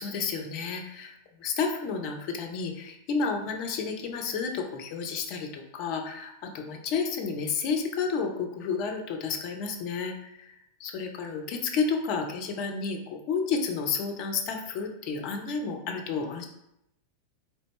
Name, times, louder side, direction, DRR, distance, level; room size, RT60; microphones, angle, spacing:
voice 1, 0.0-10.3 10.8-16.4, left 5 dB, 45° left, 4 dB, 0.7 m, -31 dB
4.1 x 3.3 x 3.2 m, 0.81 s
figure-of-eight pair, 90°, 0 cm